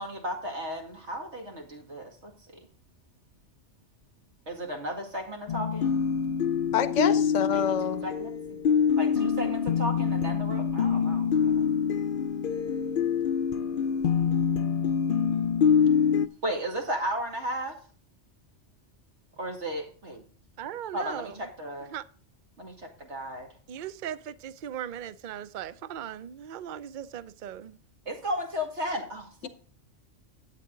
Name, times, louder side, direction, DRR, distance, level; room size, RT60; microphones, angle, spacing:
voice 1, 0.0-2.6 4.5-5.9 7.5-8.6 9.0-11.7 16.4-17.8 19.4-20.2 20.9-21.9 22.6-23.5 28.1-29.5, equal, 70° right, 2.5 m, -35 dB
sound 1, 5.5-16.3, left 7 dB, 55° left, 0.7 m, -25 dB
voice 2, 6.7-8.0, left 8 dB, 90° left, 1.1 m, -27 dB
voice 3, 20.6-21.5 21.9-22.0 23.7-27.8, right 10 dB, 55° right, 0.6 m, -38 dB
12.0 x 8.3 x 3.8 m
omnidirectional pair, 1.2 m